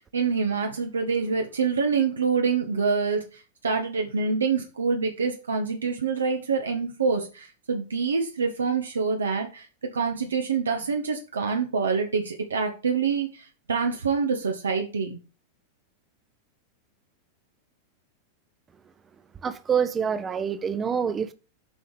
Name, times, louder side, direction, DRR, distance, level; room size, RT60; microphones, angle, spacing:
voice 1, 0.0-9.7 9.9-15.2, right 5 dB, 70° right, 1.5 m, -26 dB
voice 2, 19.4-21.3, right 7 dB, 20° right, 1.0 m, -26 dB
8.0 x 5.6 x 4.9 m
figure-of-eight pair, 90°, 0 cm